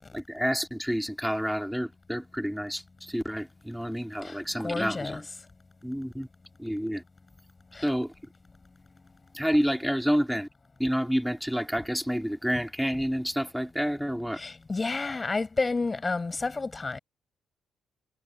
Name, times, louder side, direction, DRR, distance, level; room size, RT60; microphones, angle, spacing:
voice 1, 0.1-5.2 5.8-6.3 6.6-7.0 7.8-8.1 9.3-10.5 10.8-14.4, equal, ahead, 3.0 m, -29 dB
voice 2, 4.2-5.2 7.7-7.9 14.4-17.0, left 3 dB, 25° left, 7.8 m, -31 dB
cardioid pair, 90°, 0 cm